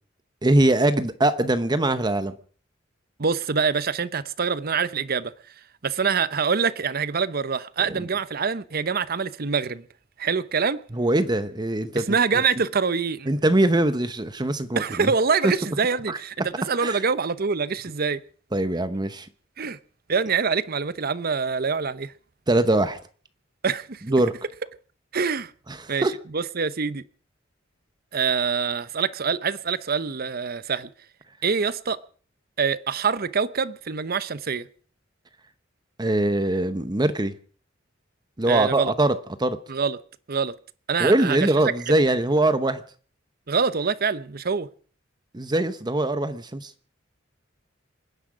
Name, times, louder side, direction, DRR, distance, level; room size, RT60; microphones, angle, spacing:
voice 1, 0.4-2.3 8.0-8.1 10.9-12.2 13.3-15.1 15.4-15.5 16.1-16.2 16.8-17.0 18.5-19.3 22.5-23.0 24.1-24.3 25.7-26.2 36.0-37.3 38.4-39.6 41.0-42.8 45.3-46.7, right 1 dB, 20° right, 0.9 m, -22 dB
voice 2, 3.2-5.3 5.8-9.8 10.2-10.8 12.0-13.3 14.8-18.2 19.6-19.8 20.1-22.1 23.6-24.0 25.1-25.5 25.9-27.0 28.1-30.9 31.4-32.0 32.6-34.7 38.5-38.9 39.7-40.0 40.3-40.5 40.9-41.5 43.5-44.7, right 5 dB, 50° right, 0.8 m, -25 dB
28.0 x 10.0 x 4.9 m
head